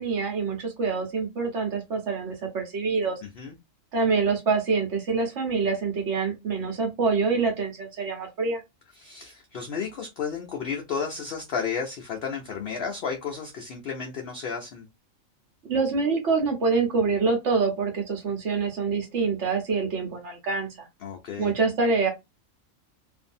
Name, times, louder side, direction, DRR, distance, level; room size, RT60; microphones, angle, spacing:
voice 1, 0.0-3.2 3.9-8.6 15.7-20.7 21.4-22.1, right 4 dB, 60° right, 1.3 m, -25 dB
voice 2, 8.9-14.9 21.0-21.5, left 6 dB, 60° left, 0.6 m, -32 dB
2.6 x 2.5 x 2.6 m
omnidirectional pair, 1.4 m